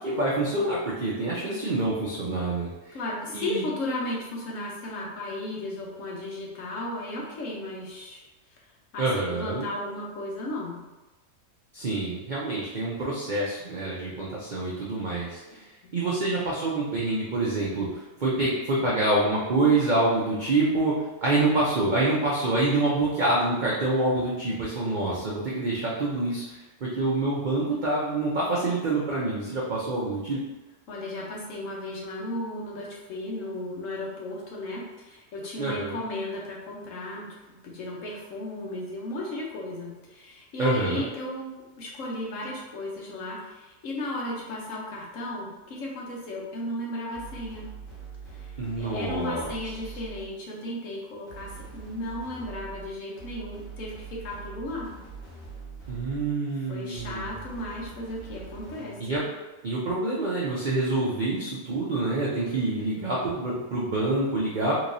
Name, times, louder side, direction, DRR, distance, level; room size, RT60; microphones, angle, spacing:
voice 1, 0.0-3.0 3.3-3.6 9.0-9.6 11.7-15.6 15.9-26.4 26.8-30.4 35.6-36.0 40.6-41.0 48.6-49.5 55.9-57.2 59.0-59.2 59.6-64.8, right 2 dB, 90° right, -6 dB, 0.4 m, -26 dB
voice 2, 2.9-8.2 8.9-10.8 15.8-16.2 30.9-37.3 37.6-47.7 48.3-54.9 56.7-59.2, left 1 dB, 60° left, -3 dB, 1.1 m, -35 dB
sound 1, 47.1-50.4 51.3-56.4 56.9-59.1, right 5 dB, 40° left, 1.5 m, -43 dB
3.6 x 3.0 x 2.6 m, 1.1 s
omnidirectional pair, 1.6 m